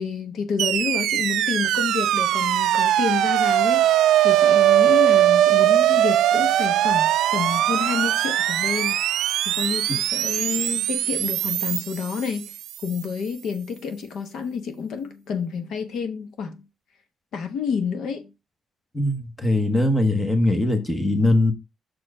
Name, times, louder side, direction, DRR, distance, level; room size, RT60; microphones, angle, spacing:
voice 1, 0.0-9.0 9.4-12.5 12.8-16.6 17.3-18.3, left 6 dB, 60° left, 1.1 m, -29 dB
sound 1, 0.6-12.8, right 12 dB, 75° right, 0.3 m, -20 dB
voice 2, 18.9-21.5, left 2 dB, 10° left, 1.0 m, -21 dB
6.4 x 4.5 x 4.8 m
cardioid pair, 170°, 0 cm